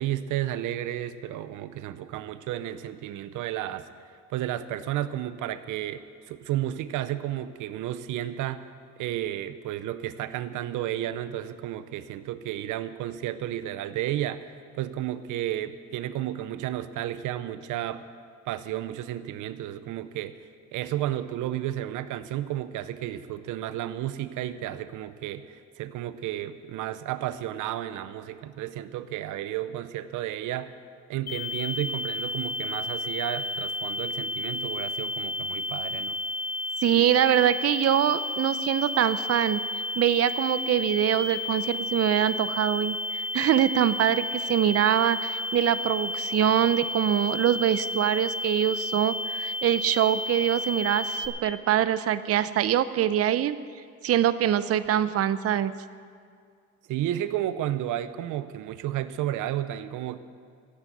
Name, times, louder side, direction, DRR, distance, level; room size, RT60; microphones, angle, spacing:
voice 1, 0.0-3.9 4.3-8.7 9.0-18.0 18.5-20.3 20.7-30.7 31.1-36.2 56.9-60.2, right 12 dB, 90° right, 13 dB, 0.7 m, -32 dB
sound 1, 31.3-51.3, left 2 dB, 60° left, 2.7 m, -32 dB
voice 2, 36.8-39.6 40.0-53.6 54.0-55.7, right 11 dB, 50° right, 14 dB, 0.6 m, -24 dB
13.5 x 8.3 x 9.3 m, 2.2 s
cardioid pair, 90°, 30 cm